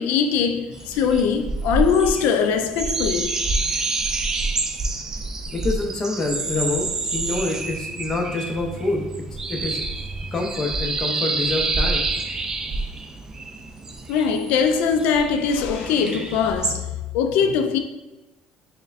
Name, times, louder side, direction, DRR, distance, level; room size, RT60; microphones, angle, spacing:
voice 1, 0.0-3.4 14.1-16.9 17.1-17.8, left 6 dB, 85° left, 0.4 m, -21 dB
sound 1, 0.7-16.8, right 3 dB, 20° right, 0.3 m, -28 dB
voice 2, 5.5-9.0 9.5-9.8 10.3-12.0, left 2 dB, 25° left, 0.6 m, -26 dB
6.4 x 2.1 x 2.4 m
cardioid pair, 140°, 3 cm